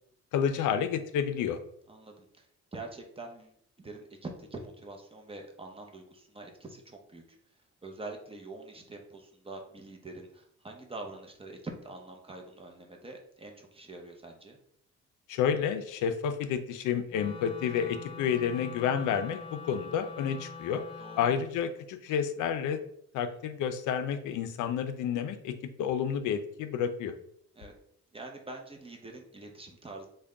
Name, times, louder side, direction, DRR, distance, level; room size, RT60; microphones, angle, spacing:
voice 1, 0.3-1.6 15.3-20.8 21.2-22.8 23.1-27.1, left 8 dB, 80° left, 9 dB, 0.5 m, -30 dB
voice 2, 1.9-2.5 2.7-7.4 7.8-14.6 21.0-21.2 27.5-27.7 28.1-30.1, right 2 dB, 20° right, 2 dB, 0.7 m, -45 dB
Wind instrument woodwind instrument, 17.1-21.5, left 5 dB, 20° left, 0.4 m, -44 dB
3.4 x 2.2 x 3.7 m, 0.68 s
cardioid pair, 90°, 30 cm